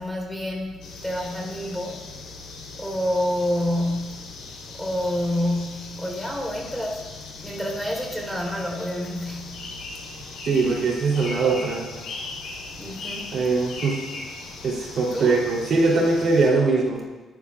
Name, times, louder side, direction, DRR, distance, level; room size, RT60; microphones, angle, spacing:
voice 1, 0.0-2.1 2.8-4.2 4.7-7.1 7.4-9.6 12.8-13.3 15.1-15.4, left 1 dB, 5° left, 0 dB, 4.2 m, -28 dB
sound 1, 0.8-16.5, left 3 dB, 80° left, 3.7 m, -39 dB
voice 2, 10.4-11.9 13.3-14.0 14.6-17.0, right 3 dB, 60° right, -2 dB, 3.5 m, -21 dB
23.0 x 12.5 x 2.5 m, 1.2 s
cardioid pair, 90°, 0 cm